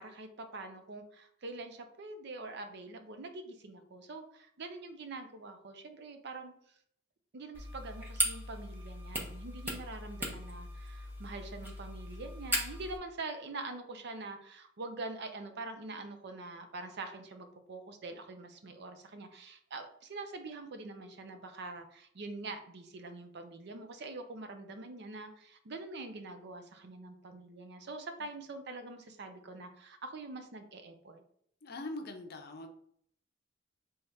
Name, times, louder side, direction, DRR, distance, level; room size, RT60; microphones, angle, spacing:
voice 1, 0.0-6.5 7.3-31.2, right 3 dB, 60° right, 7 dB, 0.6 m, -44 dB
sound 1, 7.5-13.0, equal, 10° right, 0.9 m, -38 dB
voice 2, 31.6-32.7, left 2 dB, 55° left, 4 dB, 0.7 m, -42 dB
3.4 x 3.4 x 4.0 m, 0.66 s
head